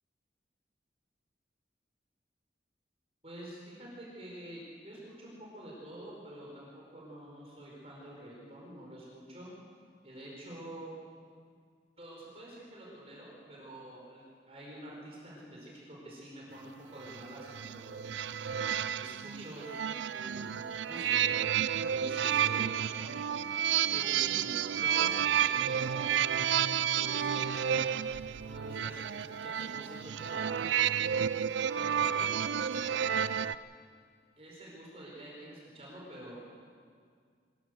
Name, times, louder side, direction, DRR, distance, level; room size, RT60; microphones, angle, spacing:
voice 1, 3.2-9.5 10.0-10.9 12.0-18.0 18.9-20.5 20.8-21.3 21.9-23.3 23.8-26.4 26.9-27.8 28.4-30.6 31.9-32.3 32.6-33.2 34.4-36.4, right 1 dB, 35° right, -4 dB, 4.8 m, -48 dB
sound 1, 17.0-33.5, right 9 dB, 80° right, 0.4 m, -31 dB
23.5 x 15.0 x 7.8 m, 2.1 s
head